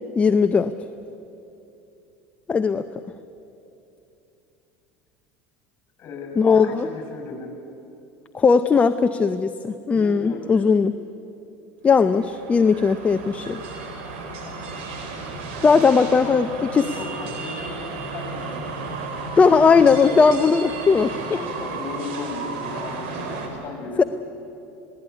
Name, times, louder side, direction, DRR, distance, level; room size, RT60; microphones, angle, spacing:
voice 1, 0.2-0.7 2.5-2.9 6.4-6.9 8.3-10.9 11.8-13.6 15.6-16.9 19.4-21.1 24.0-24.1, left 5 dB, 20° left, 9 dB, 0.6 m, -18 dB
voice 2, 6.0-7.5 9.9-10.7 14.4-14.6 15.6-16.3 16.9-20.2 21.0-24.1, left 3 dB, 40° left, 4 dB, 7.4 m, -36 dB
sound 1, 12.0-23.5, right 4 dB, 85° right, 3.9 m, -33 dB
20.5 x 17.0 x 9.9 m, 2.8 s
supercardioid pair, 120°, 6 cm